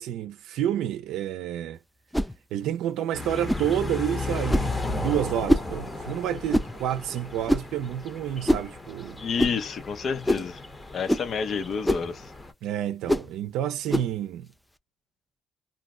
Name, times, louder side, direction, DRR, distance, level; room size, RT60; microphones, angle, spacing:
voice 1, 0.0-1.8 2.5-9.2 12.6-14.5, right 11 dB, 90° right, 0.4 m, -29 dB
sound 1, 2.1-2.3 3.5-3.7 4.5-4.7 5.5-5.7 6.5-6.7 7.5-7.7 8.5-8.7 9.4-9.6 10.3-10.5 11.1-11.3 11.8-12.1 13.1-13.3 13.9-14.1, equal, 5° left, 0.3 m, -24 dB
sound 2, 3.1-12.5, left 3 dB, 20° left, 1.0 m, -35 dB
voice 2, 9.2-10.6 10.9-12.3, left 6 dB, 55° left, 0.7 m, -29 dB
2.5 x 2.0 x 3.7 m
cardioid pair, 90°, 0 cm